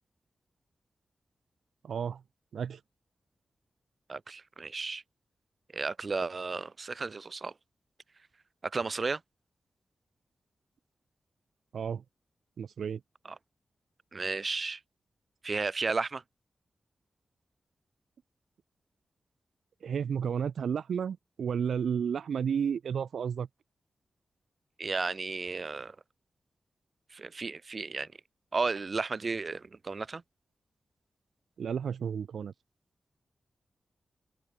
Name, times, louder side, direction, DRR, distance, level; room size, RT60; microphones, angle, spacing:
voice 1, 1.8-2.2 2.5-2.8 11.7-12.0 12.6-13.0 19.8-23.5 31.6-32.5, right 7 dB, 90° right, 1.0 m, -32 dB
voice 2, 4.1-5.0 5.7-7.5 8.6-9.2 14.1-14.8 15.4-16.2 24.8-25.9 27.1-28.1 28.5-30.2, right 4 dB, 45° right, 1.1 m, -33 dB
wide cardioid pair, 95°, 0 cm